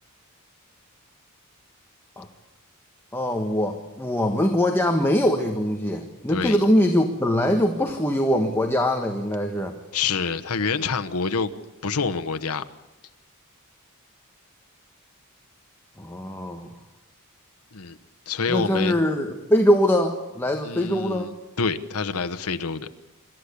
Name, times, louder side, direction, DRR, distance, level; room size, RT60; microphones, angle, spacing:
voice 1, 3.1-9.7 16.0-16.7 18.5-21.3, equal, 10° left, 3 dB, 1.5 m, -22 dB
voice 2, 6.3-6.6 9.9-11.5 11.8-12.6 17.7-18.0 18.3-19.0 20.6-22.9, left 5 dB, 80° left, 9 dB, 1.1 m, -27 dB
26.5 x 13.5 x 8.5 m, 1.1 s
head